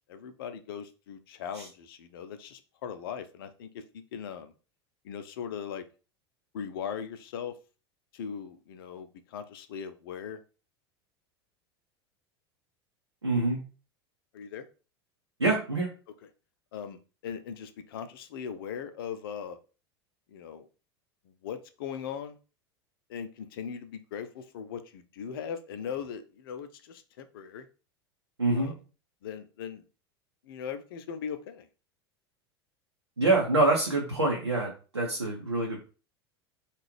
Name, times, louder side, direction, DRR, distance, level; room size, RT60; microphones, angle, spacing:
voice 1, 0.1-4.5 5.0-5.8 6.5-7.5 8.1-10.4 14.3-14.7 16.7-19.6 20.3-20.6 21.4-22.4 23.1-27.7 28.5-28.8 29.2-29.9 30.4-31.7, left 7 dB, 55° left, 11 dB, 0.5 m, -39 dB
voice 2, 13.2-13.6 15.4-15.9 28.4-28.7 33.2-35.8, right 2 dB, 85° right, -2 dB, 0.7 m, -26 dB
3.6 x 2.4 x 3.1 m, 0.35 s
figure-of-eight pair, 80°, 14 cm